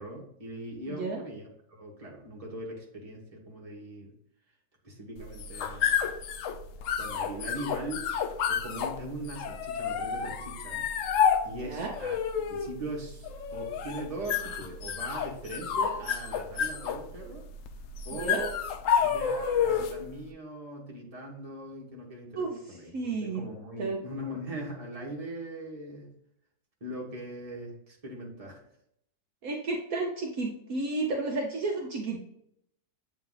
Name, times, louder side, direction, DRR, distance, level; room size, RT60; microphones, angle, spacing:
voice 1, 0.0-4.1 4.8-6.0 7.0-8.1 8.5-10.8 11.4-12.2 12.5-17.4 18.0-18.6 19.0-26.1 26.8-28.6, right 1 dB, 25° right, -3 dB, 1.4 m, -40 dB
voice 2, 0.9-1.2 11.6-11.9 18.1-18.5 22.3-22.6 22.9-23.4 23.8-24.0 29.4-32.2, right 3 dB, 65° right, 0 dB, 1.2 m, -32 dB
sound 1, 5.2-20.1, left 7 dB, 70° left, 0.8 m, -30 dB
7.9 x 3.2 x 3.8 m, 0.74 s
omnidirectional pair, 1.7 m